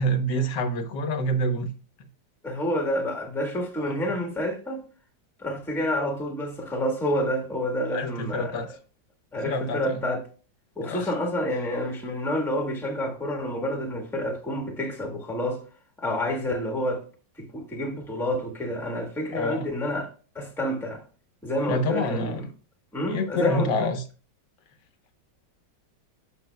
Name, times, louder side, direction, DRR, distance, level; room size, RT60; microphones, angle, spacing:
voice 1, 0.0-1.7 3.8-4.0 7.9-8.7 9.5-10.0 10.8-11.1 19.3-19.7 21.7-22.5 23.1-24.0, equal, 75° left, 1.5 m, -27 dB
voice 2, 2.4-4.8 5.4-8.7 9.3-10.2 10.8-15.6 16.0-17.0 17.4-21.0 21.4-22.3 22.9-23.9, equal, ahead, 1.3 m, -29 dB
12.5 x 5.5 x 2.2 m
omnidirectional pair, 2.0 m